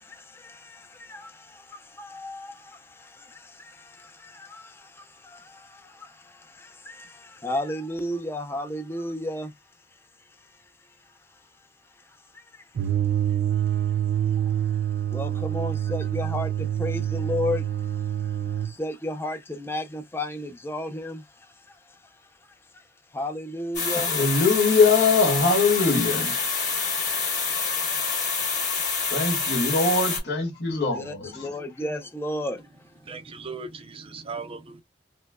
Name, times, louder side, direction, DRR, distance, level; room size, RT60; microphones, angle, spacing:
voice 1, 0.0-13.0 13.2-24.2 30.9-33.0, left 1 dB, 15° left, 0.5 m, -35 dB
sound 1, 12.8-18.7, right 10 dB, 85° right, 0.4 m, -26 dB
sound 2, 23.7-30.2, left 5 dB, 45° left, 1.9 m, -27 dB
voice 2, 23.9-26.4 29.1-31.5, left 4 dB, 70° left, 1.7 m, -22 dB
voice 3, 33.0-34.8, right 4 dB, 30° right, 0.5 m, -38 dB
4.3 x 2.1 x 2.2 m
head